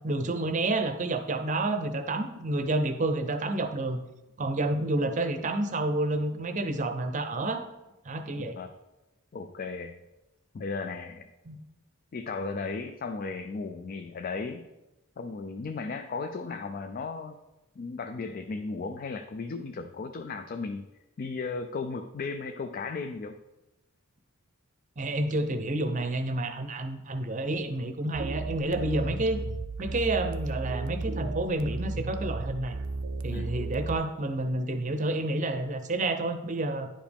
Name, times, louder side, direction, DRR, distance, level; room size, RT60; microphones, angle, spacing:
voice 1, 0.0-4.0 4.4-7.6 8.0-8.6 11.5-11.6 25.0-29.4 29.8-32.8 33.2-36.9, right 2 dB, 35° right, 8 dB, 0.6 m, -29 dB
voice 2, 8.3-8.7 9.3-9.9 10.5-11.3 12.1-14.6 15.2-17.4 17.8-20.8 21.2-23.3 33.3-33.5, left 4 dB, 40° left, 7 dB, 0.3 m, -35 dB
sound 1, 28.1-33.9, right 3 dB, 80° right, 0.5 m, -34 dB
10.0 x 5.1 x 3.5 m, 1.0 s
head